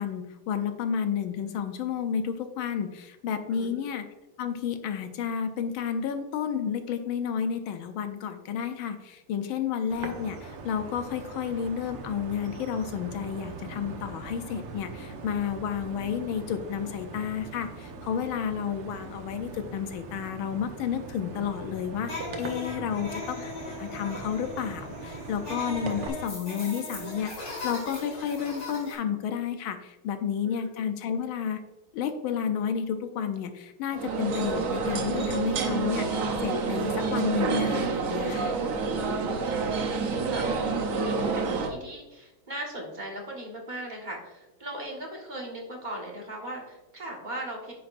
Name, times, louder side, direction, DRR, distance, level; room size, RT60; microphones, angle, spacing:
voice 1, 0.0-4.1 4.4-23.5 23.8-31.6 31.9-38.5, left 8 dB, 75° left, 8 dB, 1.4 m, -31 dB
voice 2, 3.5-3.8 22.8-23.1 30.4-30.7 39.2-47.7, right 1 dB, 25° right, -2 dB, 1.3 m, -39 dB
sound 1, 9.9-26.1, right 4 dB, 80° right, 1.9 m, -41 dB
sound 2, 22.0-28.9, left 1 dB, 50° left, 3.7 m, -39 dB
sound 3, 33.9-41.7, right 4 dB, 60° right, 0.8 m, -28 dB
10.0 x 7.6 x 2.6 m, 1.0 s
omnidirectional pair, 2.4 m